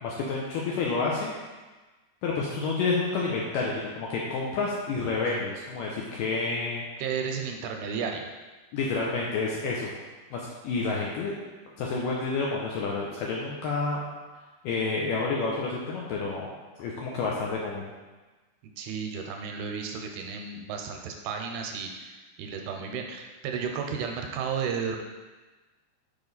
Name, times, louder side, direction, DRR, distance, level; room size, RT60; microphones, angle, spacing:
voice 1, 0.0-1.3 2.2-6.8 8.7-9.9 10.3-11.3 11.8-14.0 14.6-16.5 16.8-17.9, left 4 dB, 80° left, -3 dB, 2.0 m, -29 dB
voice 2, 7.0-8.3 18.6-25.0, right 6 dB, 85° right, 3 dB, 2.4 m, -33 dB
6.7 x 5.3 x 4.0 m, 1.2 s
omnidirectional pair, 4.6 m